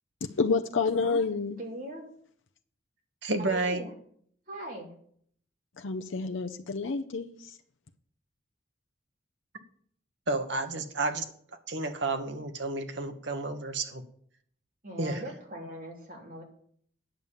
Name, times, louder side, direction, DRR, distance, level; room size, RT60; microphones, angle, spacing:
voice 1, 0.2-1.6 5.8-7.6, left 4 dB, 75° left, 5 dB, 0.6 m, -29 dB
voice 2, 1.6-2.0 3.4-3.9 4.5-4.9 14.8-16.4, right 1 dB, 45° right, -1 dB, 3.2 m, -40 dB
voice 3, 3.2-3.8 10.3-11.2 11.7-14.0 15.0-15.2, right 2 dB, 65° right, 7 dB, 1.4 m, -31 dB
9.2 x 6.9 x 7.3 m, 0.62 s
head